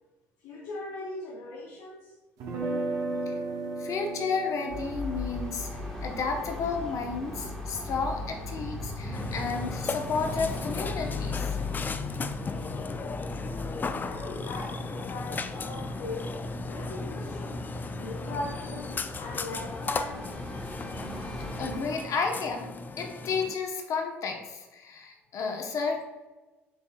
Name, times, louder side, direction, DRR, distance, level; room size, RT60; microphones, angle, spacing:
voice 1, 0.4-2.1 14.0-16.3 16.7-17.6 18.0-20.3, left 2 dB, 75° left, -2 dB, 0.6 m, -39 dB
sound 1, 2.4-8.4, right 2 dB, 65° right, 0.9 m, -36 dB
voice 2, 3.8-5.7 6.0-11.5 21.6-22.7 23.0-26.0, left 4 dB, 55° left, 2 dB, 0.9 m, -32 dB
sound 2, 4.7-21.8, left 2 dB, 10° left, 1.4 m, -38 dB
Burping eructation, 9.1-23.5, left 3 dB, 30° left, 0.3 m, -36 dB
5.9 x 3.5 x 2.3 m, 1.2 s
hypercardioid pair, 60°, 7 cm